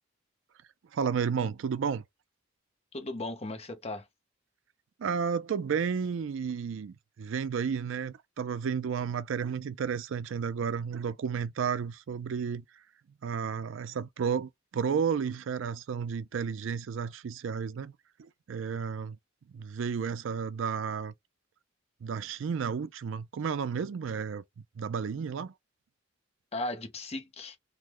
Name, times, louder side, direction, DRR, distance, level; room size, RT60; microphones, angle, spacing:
voice 1, 0.9-2.0 5.0-12.6 13.2-17.9 18.2-19.2 19.5-21.1 22.0-24.4 24.8-25.5, right 6 dB, 70° right, 0.4 m, -32 dB
voice 2, 2.9-4.1 26.5-27.6, left 2 dB, 30° left, 0.8 m, -36 dB
3.6 x 2.1 x 3.0 m
head